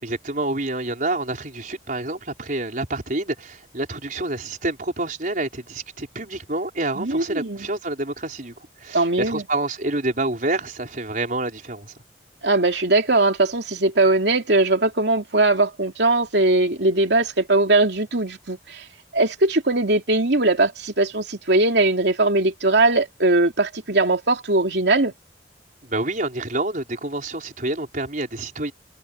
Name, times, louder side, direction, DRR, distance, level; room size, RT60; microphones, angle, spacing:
voice 1, 0.0-11.9 25.8-28.7, right 2 dB, 50° right, 4.7 m, -28 dB
voice 2, 7.0-7.7 8.9-9.4 12.4-18.8 19.1-25.1, right 2 dB, 75° right, 2.9 m, -20 dB
head